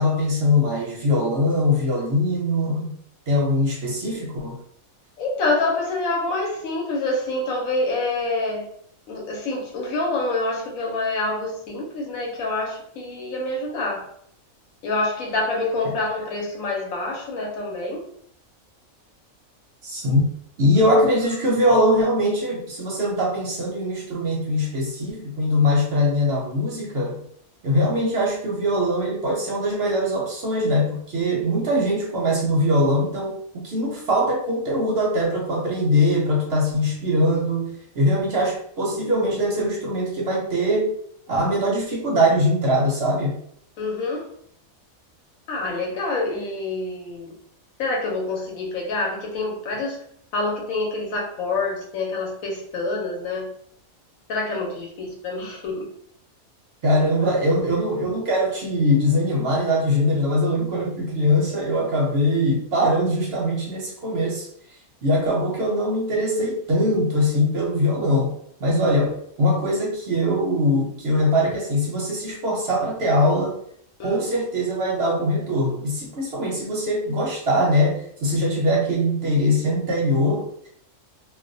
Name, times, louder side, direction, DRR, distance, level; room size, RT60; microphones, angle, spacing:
voice 1, 0.0-2.9 3.3-4.6 15.8-16.0 19.8-20.3 20.6-27.2 27.6-41.0 41.3-43.4 56.8-64.5 65.0-73.6 74.0-80.7, left 1 dB, 60° right, -3 dB, 0.7 m, -22 dB
voice 2, 5.2-8.7 9.1-14.1 14.8-18.0 43.8-44.3 45.5-47.4 47.8-50.0 50.3-53.5 54.3-55.9 74.0-74.2, left 2 dB, 80° left, -1 dB, 1.1 m, -26 dB
2.4 x 2.0 x 2.6 m, 0.66 s
omnidirectional pair, 1.5 m